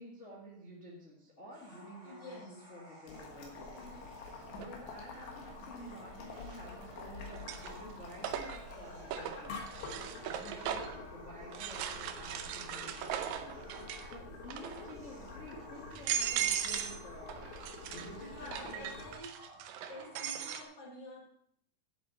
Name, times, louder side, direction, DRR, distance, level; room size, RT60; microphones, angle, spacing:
voice 1, 0.0-17.4 17.9-18.9, equal, 60° left, -4 dB, 0.7 m, -51 dB
sound 1, 1.5-20.6, right 1 dB, 10° right, 3.0 m, -55 dB
voice 2, 2.0-2.6 18.2-19.6 19.9-21.3, left 1 dB, 45° left, -2 dB, 2.7 m, -49 dB
Boiling, 3.1-19.1, left 3 dB, 85° left, 3.5 m, -48 dB
sound 2, 4.6-4.7 6.4-6.9 7.3-11.0 11.5-14.1 14.4-14.9 15.5-15.6 15.9-17.0 17.3-20.6, right 9 dB, 85° right, 1.7 m, -38 dB
10.5 x 7.9 x 4.0 m, 0.67 s
omnidirectional pair, 4.1 m